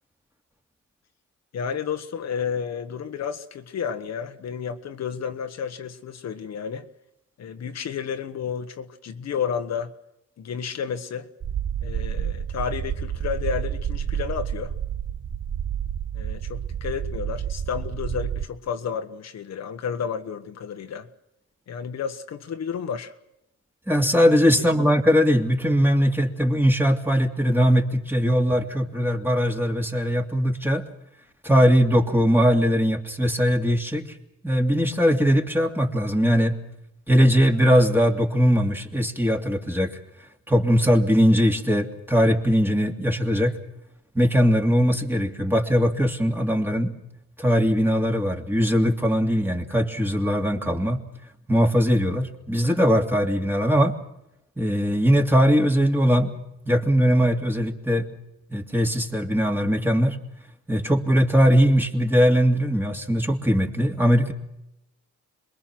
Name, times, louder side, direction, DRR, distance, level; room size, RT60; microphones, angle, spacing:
voice 1, 1.5-6.9 7.4-9.9 10.4-11.3 11.8-14.7 16.1-21.1 21.7-23.1 24.6-24.7, left 7 dB, 60° left, 1.4 m, -31 dB
sound 1, 11.4-18.5, right 9 dB, 40° right, 1.1 m, -29 dB
voice 2, 23.9-30.8 31.4-34.1 34.4-36.6 37.1-39.9 40.5-43.5 44.1-46.9 47.4-51.0 51.5-54.0 54.6-56.3 56.7-58.0 58.5-60.2 60.7-64.3, equal, 5° right, 2.7 m, -20 dB
27.0 x 22.0 x 6.1 m
cardioid pair, 90°, 30 cm